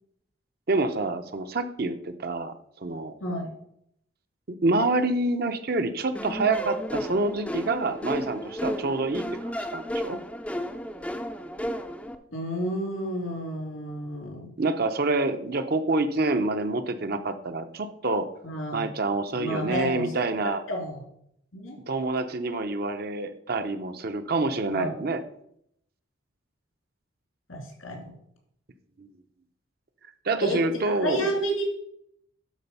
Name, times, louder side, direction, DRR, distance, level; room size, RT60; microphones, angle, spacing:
voice 1, 0.7-3.2 4.5-10.2 14.6-18.3 18.7-20.6 21.8-25.2 29.0-29.1 30.2-31.4, right 2 dB, 50° right, 9 dB, 0.7 m, -27 dB
voice 2, 3.2-3.5 12.3-14.5 18.4-18.9 19.3-20.1 20.7-21.0 21.5-21.8 24.7-24.9 27.5-28.1 30.4-31.6, equal, 85° left, 2 dB, 2.8 m, -31 dB
sound 1, 6.1-12.1, equal, 5° left, 0.4 m, -33 dB
11.5 x 4.3 x 5.4 m, 0.73 s
head